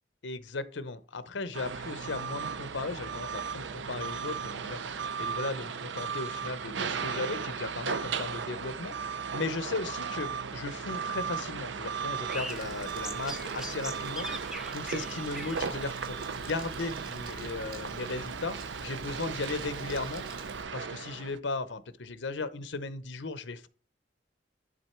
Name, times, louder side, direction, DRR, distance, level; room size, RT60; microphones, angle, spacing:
voice 1, 0.2-20.5 20.7-23.7, left 3 dB, 80° left, 13 dB, 0.8 m, -37 dB
sound 1, 1.5-21.4, right 6 dB, 75° right, 0.5 m, -36 dB
sound 2, 12.3-17.3, equal, 5° right, 0.5 m, -43 dB
Crumpling crinkling, 12.5-20.6, right 3 dB, 55° right, 1.8 m, -49 dB
11.0 x 3.9 x 4.4 m, 0.41 s
head